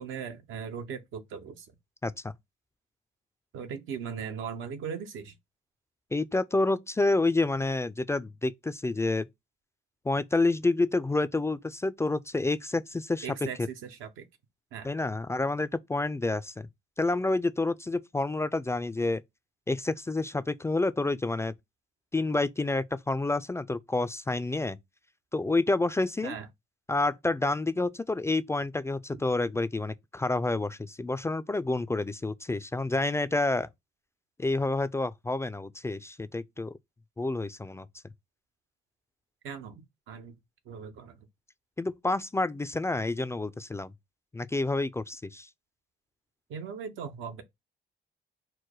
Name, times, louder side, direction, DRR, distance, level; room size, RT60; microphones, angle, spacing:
voice 1, 0.0-1.7 3.5-5.3 13.2-14.3 14.7-14.9 26.2-26.5 39.4-40.4 40.7-41.2 46.5-47.4, right 7 dB, 85° right, 0.9 m, -38 dB
voice 2, 6.1-9.3 10.1-13.3 13.6-13.7 14.8-16.7 17.0-19.2 19.7-21.5 22.1-24.8 25.3-26.4 26.9-33.7 34.4-36.7 37.2-37.9 41.8-43.9 44.3-45.5, left 2 dB, 15° left, 0.3 m, -28 dB
4.6 x 2.1 x 4.6 m
cardioid pair, 90°, 20 cm